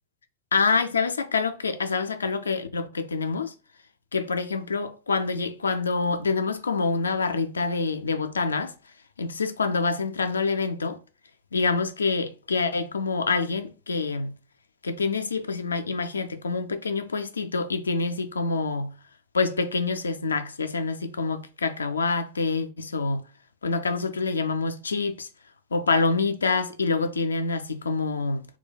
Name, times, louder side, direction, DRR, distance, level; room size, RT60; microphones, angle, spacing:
voice 1, 0.5-3.5 4.1-8.7 9.2-11.0 11.5-14.3 14.8-18.9 19.3-23.2 23.6-25.3 25.7-28.5, left 4 dB, 75° left, 0.3 m, -26 dB
2.2 x 2.2 x 3.8 m
figure-of-eight pair, 90°, 0 cm